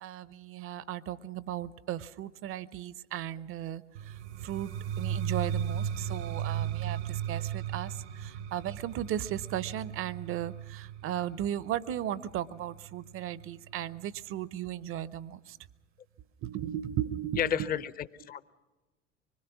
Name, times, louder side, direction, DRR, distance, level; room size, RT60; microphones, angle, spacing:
voice 1, 0.0-4.1 4.4-15.6 16.4-17.7, right 11 dB, 35° right, 19 dB, 0.7 m, -36 dB
sound 1, 3.9-13.7, right 9 dB, 70° right, 1.0 m, -36 dB
voice 2, 17.4-18.4, left 9 dB, 25° left, 16 dB, 0.7 m, -31 dB
25.0 x 21.0 x 6.1 m, 1.2 s
figure-of-eight pair, 75°, 36 cm